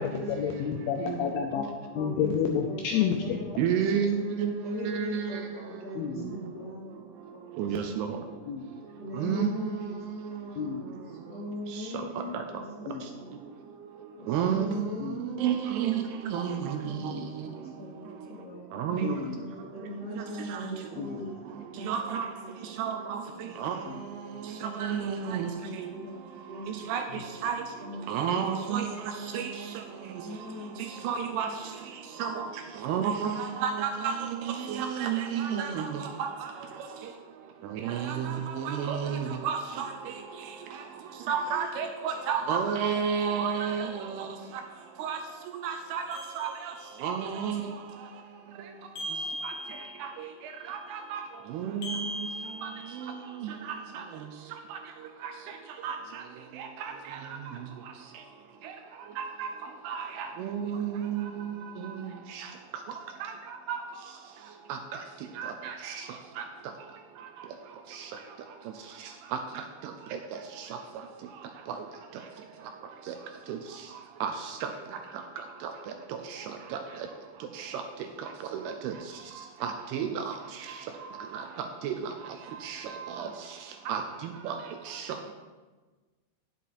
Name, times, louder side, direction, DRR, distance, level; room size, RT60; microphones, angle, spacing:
voice 1, 0.0-1.6 2.0-3.4 5.9-6.6 8.5-8.6 10.6-10.8 12.9-13.1 15.0-15.2 17.0-17.3 19.0-19.7 21.0-21.3 23.9-24.0 27.1-27.2, left 7 dB, 80° left, 3 dB, 2.3 m, -31 dB
voice 2, 1.9-2.3 2.6-4.0 4.6-6.9 7.6-7.9 8.2-8.3 9.0-10.0 10.9-13.3 14.2-15.4 16.8-18.8 19.7-21.4 21.7-21.9 22.4-22.6 23.3-23.5 25.1-26.1 26.5-26.7 27.2-27.3 27.8-28.0 30.2-31.0, left 2 dB, 30° left, -8 dB, 2.3 m, -40 dB
voice 3, 3.6-4.5 4.8-5.5 6.2-6.4 7.6-8.2 9.1-10.5 11.7-11.9 12.3-12.6 14.3-17.5 18.7-19.2 20.1-20.8 21.8-22.3 22.8-25.9 26.7-27.6 28.1-29.8 30.2-30.3 30.8-31.7 32.2-36.7 37.6-40.8 41.3-44.4 45.0-45.2 45.5-46.7 47.0-47.8 48.6-48.7 49.4-49.5 50.0-51.2 51.5-52.3 52.6-52.7 53.0-53.1 53.4-54.0 54.7-54.8 55.2-55.3 55.8-56.2 56.5-57.4 58.6-58.7 59.2-59.5 59.8-62.5 63.2-63.8 64.7-65.0 65.4-66.1 66.4-66.5 67.9-68.1 69.3-70.2 70.6-70.8 71.7-71.8 73.1-73.2 73.5-73.6 74.2-74.7 75.6-75.7 76.1-76.8 77.5-77.8 78.2-79.0 79.6-80.8 81.3-82.1 82.6-83.3 83.9-84.6 84.9-85.2, right 7 dB, 80° right, 5 dB, 2.5 m, -32 dB
sound 1, 46.1-47.1 49.0-50.2 51.8-53.3, equal, 65° left, 2.9 m, -39 dB
10.0 x 7.3 x 4.1 m, 1.3 s
omnidirectional pair, 5.0 m